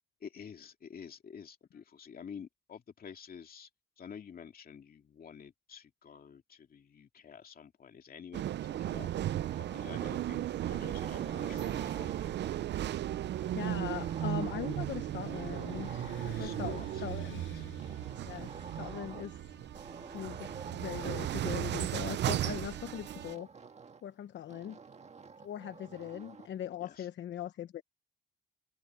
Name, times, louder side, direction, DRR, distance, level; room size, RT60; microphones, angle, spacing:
voice 1, 0.2-3.7 4.0-12.1 16.3-17.6 26.8-27.1, left 7 dB, 50° left, 2.4 m, -50 dB
sound 1, 8.3-23.3, right 12 dB, 60° right, 0.6 m, -36 dB
sound 2, 8.7-10.3 10.7-12.7 13.4-15.0 15.3-17.3 17.8-19.4 19.7-21.8 22.5-24.1 24.5-26.5, right 5 dB, 35° right, 1.8 m, -50 dB
Motorcycle / Traffic noise roadway noise, 9.4-23.5, left 14 dB, 85° left, 7.7 m, -56 dB
voice 2, 13.5-17.4 18.2-19.4 20.1-23.5 24.0-24.8 25.4-27.8, left 10 dB, 65° left, 1.0 m, -40 dB
cardioid pair, 90°, 20 cm